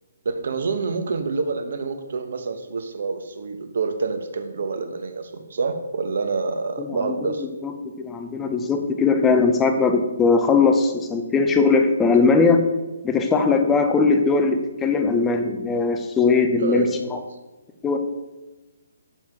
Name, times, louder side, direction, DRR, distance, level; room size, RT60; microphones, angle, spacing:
voice 1, 0.2-7.4 16.6-17.0, right 4 dB, 50° right, 7 dB, 0.9 m, -27 dB
voice 2, 6.8-12.6 13.0-17.2 17.8-18.0, left 4 dB, 5° left, 6 dB, 0.5 m, -20 dB
7.3 x 7.2 x 4.7 m, 1.1 s
hypercardioid pair, 175°, 0 cm